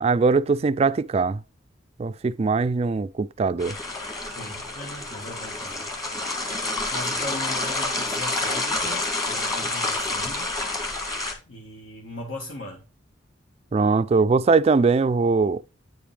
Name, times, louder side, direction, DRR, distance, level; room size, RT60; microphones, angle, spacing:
voice 1, 0.0-1.4 2.0-3.8 13.7-15.6, right 4 dB, 30° right, 0.3 m, -21 dB
sound 1, 3.6-11.3, left 2 dB, 20° left, 1.7 m, -28 dB
voice 2, 4.3-5.9 6.9-10.6 11.5-12.8, left 1 dB, 75° left, 1.8 m, -38 dB
9.4 x 5.1 x 3.3 m
head